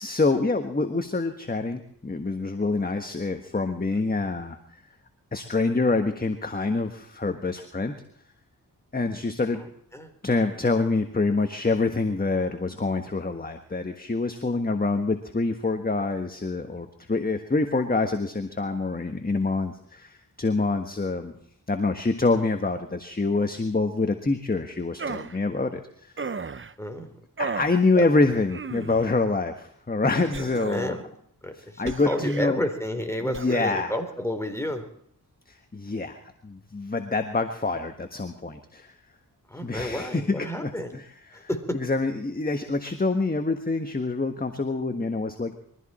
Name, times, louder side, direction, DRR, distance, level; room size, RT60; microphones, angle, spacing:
voice 1, 0.0-4.8 5.3-8.0 8.9-9.6 10.2-21.3 21.7-26.1 27.4-31.0 31.6-32.6 33.2-33.9 35.5-38.9 39.6-41.0 41.3-41.5 41.8-45.6, left 3 dB, 20° left, 6 dB, 1.5 m, -26 dB
sound 1, 25.0-25.4 26.2-26.7 27.4-27.8 28.5-29.1 30.3-31.0 31.8-32.5 33.3-33.8, right 5 dB, 30° right, 0.8 m, -34 dB
voice 2, 26.8-27.1 27.9-28.1 30.4-31.0 31.4-34.8 39.5-40.9 41.3-41.8, left 1 dB, 5° left, 7 dB, 3.6 m, -31 dB
22.5 x 14.5 x 4.3 m, 0.69 s
cardioid pair, 55°, 39 cm